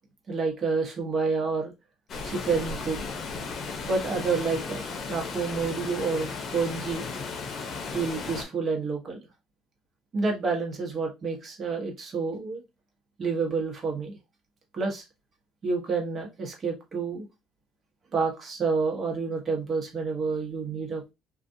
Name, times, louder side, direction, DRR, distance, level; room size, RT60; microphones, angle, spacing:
voice 1, 0.3-1.7 2.2-3.0 3.9-7.0 7.9-9.2 10.1-12.6 13.2-14.2 14.7-15.0 15.6-17.3 18.1-21.1, right 4 dB, 40° right, 1 dB, 1.1 m, -29 dB
Water, 2.1-8.4, left 4 dB, 45° left, 0.7 m, -35 dB
2.4 x 2.4 x 2.7 m, 0.24 s
supercardioid pair, 90°, 0 cm